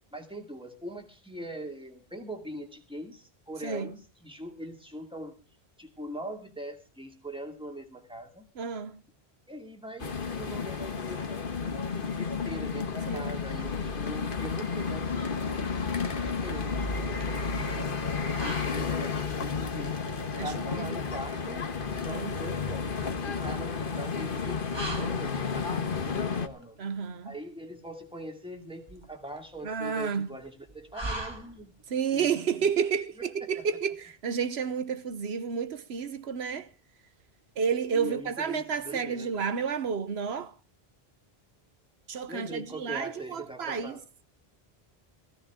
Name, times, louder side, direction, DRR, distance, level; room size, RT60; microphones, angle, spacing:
voice 1, 0.1-5.3 5.8-8.5 9.5-11.8 12.2-15.9 16.2-19.9 20.3-21.7 21.9-22.9 23.3-24.7 25.0-26.8 27.2-31.7 32.1-32.7 33.2-33.6 37.9-39.3 42.3-44.0, right 1 dB, 5° right, 2.4 m, -42 dB
voice 2, 3.6-3.9 8.6-9.0 13.1-13.4 20.4-20.9 22.1-22.4 26.8-27.3 29.6-30.3 31.9-36.7 37.6-40.5 42.1-43.9, right 6 dB, 85° right, 1.2 m, -31 dB
sound 1, 10.0-26.5, left 5 dB, 60° left, 1.4 m, -32 dB
sound 2, 15.2-31.9, right 1 dB, 25° right, 2.0 m, -44 dB
17.0 x 15.0 x 3.6 m
omnidirectional pair, 1.1 m